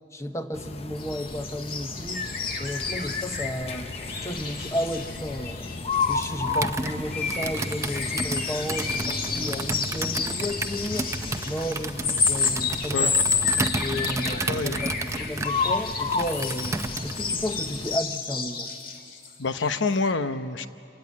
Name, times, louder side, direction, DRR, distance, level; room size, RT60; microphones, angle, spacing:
voice 1, 0.1-2.3 2.6-3.9 4.2-5.8 6.1-11.1 11.4-13.2 13.8-18.7, equal, 15° left, 7 dB, 1.0 m, -33 dB
sound 1, 0.5-18.0, left 4 dB, 35° left, 0.7 m, -34 dB
sound 2, 1.0-6.4 6.7-19.3 19.6-19.8 20.1-20.2, left 5 dB, 50° left, 1.8 m, -31 dB
Computer keyboard, 6.5-17.2, right 3 dB, 15° right, 0.6 m, -32 dB
voice 2, 14.5-14.8 19.1-20.7, left 3 dB, 80° left, 11 dB, 0.9 m, -27 dB
27.5 x 17.0 x 9.8 m, 2.7 s
head